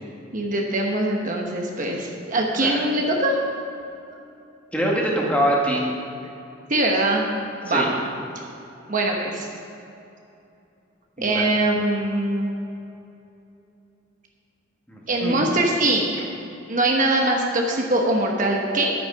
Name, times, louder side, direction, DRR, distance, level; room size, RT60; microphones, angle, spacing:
voice 1, 0.3-3.4 6.7-7.3 7.6-7.9 8.9-9.5 11.2-12.5 15.1-16.3 16.7-18.9, right 2 dB, 40° right, 0 dB, 1.1 m, -22 dB
voice 2, 4.7-5.8 7.7-7.9 11.2-11.5 14.9-15.6, right 1 dB, 5° left, -3 dB, 1.8 m, -24 dB
11.0 x 9.0 x 5.7 m, 2.7 s
head